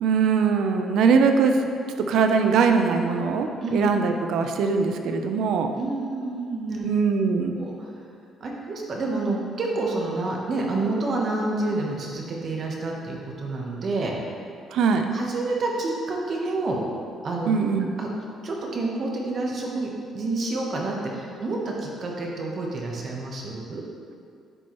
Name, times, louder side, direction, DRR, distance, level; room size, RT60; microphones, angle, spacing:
voice 1, 0.0-1.6 2.0-5.7 6.8-7.7 14.7-15.1 17.5-17.9, right 5 dB, 70° right, 6 dB, 0.5 m, -21 dB
voice 2, 5.7-6.9 7.6-7.9 8.4-14.1 15.1-16.8 17.2-17.5 18.0-18.1 18.4-23.8, right 2 dB, 40° right, -1 dB, 1.0 m, -28 dB
9.7 x 4.5 x 3.0 m, 2.3 s
cardioid pair, 140°, 0 cm